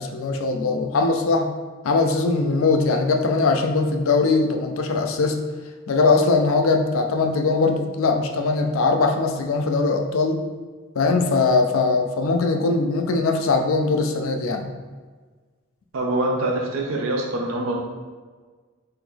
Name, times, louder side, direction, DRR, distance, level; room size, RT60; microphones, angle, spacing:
voice 1, 0.0-1.5 1.8-5.4 5.9-10.4 11.0-14.7, left 3 dB, 80° left, 5 dB, 0.4 m, -21 dB
voice 2, 15.9-17.8, right 1 dB, 80° right, 0 dB, 0.6 m, -24 dB
3.8 x 2.9 x 3.5 m, 1.4 s
head